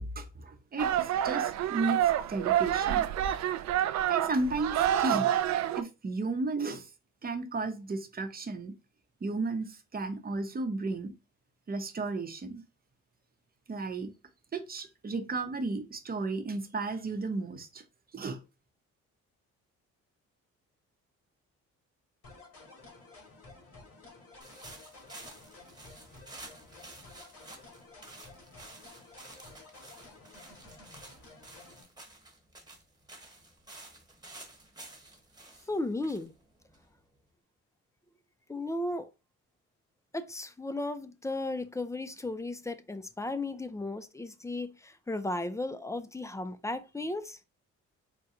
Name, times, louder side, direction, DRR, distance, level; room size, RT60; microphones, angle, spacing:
voice 1, 0.0-2.0 2.3-3.1 4.1-5.3 5.8-6.9 7.2-8.8 9.2-11.1 11.7-12.6 13.7-14.1 14.5-17.8 18.1-18.4, right 3 dB, 30° right, 0.8 m, -33 dB
sound 1, 0.8-5.8, right 11 dB, 65° right, 0.4 m, -28 dB
sound 2, 22.2-31.8, left 3 dB, 50° left, 2.0 m, -53 dB
sound 3, 24.4-37.2, right 2 dB, 15° right, 1.2 m, -51 dB
voice 2, 35.7-36.3 38.5-39.1 40.1-47.4, left 2 dB, 10° left, 0.4 m, -35 dB
4.2 x 2.2 x 3.7 m
cardioid pair, 90°, 30 cm